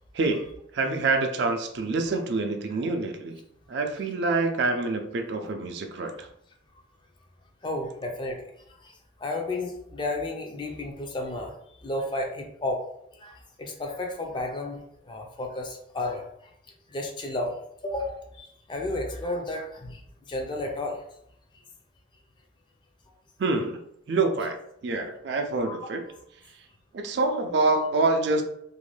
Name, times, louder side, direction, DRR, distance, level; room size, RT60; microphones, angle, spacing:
voice 1, 0.1-0.5 0.7-3.4 3.7-6.3 23.4-23.8 24.1-24.6 24.8-26.0 26.9-28.4, right 3 dB, 60° right, 5 dB, 0.4 m, -26 dB
voice 2, 7.6-8.4 8.8-12.8 13.1-16.3 16.9-17.6 17.8-20.0 20.3-21.0 25.6-25.8, left 2 dB, 25° left, 2 dB, 0.4 m, -32 dB
2.5 x 2.1 x 3.2 m, 0.73 s
head